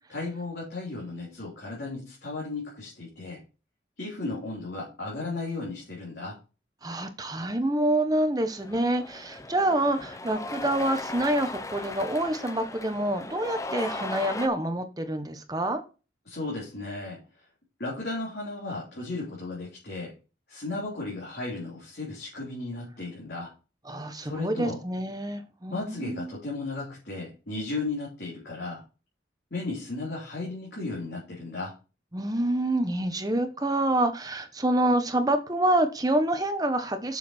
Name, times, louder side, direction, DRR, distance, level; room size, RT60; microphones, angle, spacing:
voice 1, 0.1-3.4 4.0-6.4 16.3-17.2 17.8-20.2 20.5-23.5 24.2-24.8 25.7-28.8 29.5-31.8, left 2 dB, 55° left, -5 dB, 3.4 m, -35 dB
voice 2, 6.8-15.8 23.9-26.3 32.1-37.2, right 1 dB, 20° right, 8 dB, 1.0 m, -27 dB
Cheering, 8.4-14.5, left 2 dB, 15° left, 0.6 m, -37 dB
7.1 x 6.6 x 4.3 m, 0.32 s
head